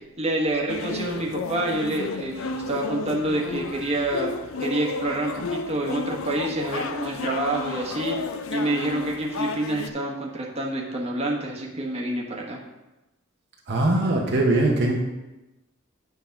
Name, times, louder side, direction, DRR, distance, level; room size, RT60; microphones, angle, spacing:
voice 1, 0.2-8.2 8.5-12.6, right 1 dB, 30° right, -2 dB, 1.3 m, -27 dB
sound 1, 0.7-9.9, left 3 dB, 80° left, 0.5 m, -32 dB
voice 2, 13.7-15.0, right 2 dB, 55° right, -1 dB, 1.1 m, -21 dB
9.3 x 4.1 x 5.8 m, 1.0 s
head